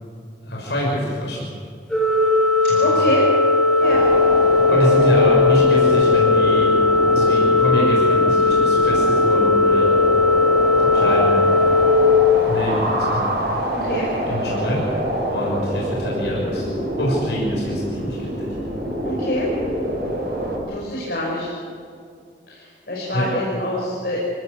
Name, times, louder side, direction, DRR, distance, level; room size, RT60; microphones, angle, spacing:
voice 1, 0.4-1.4 2.6-2.9 4.7-6.7 7.1-9.9 10.9-11.4 12.5-13.2 14.3-14.8 15.3-16.7 17.0-18.5 23.1-23.3, equal, 75° left, -4 dB, 6.4 m, -25 dB
Organ, 1.9-13.0, left 3 dB, 5° left, 3.1 m, -17 dB
voice 2, 2.8-3.2 3.8-4.1 13.7-14.1 19.0-19.5 20.7-21.5 22.5-24.2, left 1 dB, 60° left, -4 dB, 5.7 m, -25 dB
sound 1, 3.8-20.6, equal, 60° right, 7.1 m, -26 dB
27.5 x 17.5 x 8.3 m, 2.2 s
head